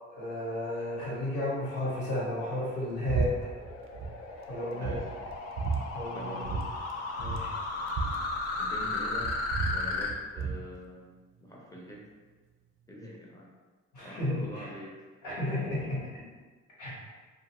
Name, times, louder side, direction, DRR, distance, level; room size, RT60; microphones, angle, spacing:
voice 1, 0.1-3.5 4.5-5.0 5.9-6.3 7.2-7.5 13.9-14.7 15.2-16.2 16.8-17.0, left 1 dB, 90° left, -7 dB, 1.2 m, -33 dB
sound 1, 2.4-10.1, left 3 dB, 55° left, 0.5 m, -35 dB
sound 2, 3.1-3.3 3.6-4.1 4.5-4.6 4.8-5.8 6.4-6.6 6.9-7.0 7.2-8.9 9.2-10.6, right 5 dB, 45° right, 0.4 m, -32 dB
voice 2, 4.7-5.1 6.1-6.8 8.6-9.4 9.7-11.1 11.4-12.0 12.9-13.5 14.0-15.0, equal, 10° left, -3 dB, 0.6 m, -44 dB
2.5 x 2.3 x 2.9 m, 1.4 s
cardioid pair, 90°, 30 cm